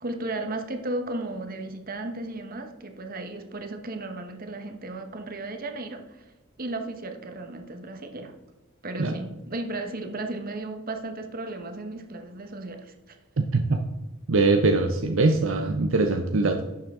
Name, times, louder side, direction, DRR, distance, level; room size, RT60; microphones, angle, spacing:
voice 1, 0.0-6.2 6.6-8.3 8.8-13.2, right 2 dB, 45° right, 6 dB, 1.2 m, -35 dB
voice 2, 13.4-13.8 14.3-16.6, right 3 dB, 65° right, 5 dB, 0.7 m, -22 dB
11.5 x 7.3 x 3.7 m, 1.0 s
head